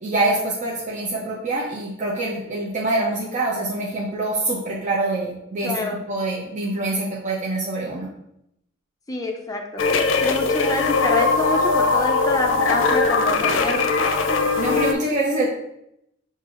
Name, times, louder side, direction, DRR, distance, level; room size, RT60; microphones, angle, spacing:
voice 1, 0.0-5.7 6.1-8.1 14.6-15.5, right 2 dB, 40° right, -5 dB, 0.7 m, -25 dB
voice 2, 5.6-6.1 9.1-9.9 10.2-13.9 14.3-14.5, left 2 dB, 20° left, 3 dB, 0.4 m, -27 dB
sound 1, 9.8-14.9, left 4 dB, 80° left, 0.5 m, -20 dB
6.6 x 2.7 x 2.5 m, 0.80 s
head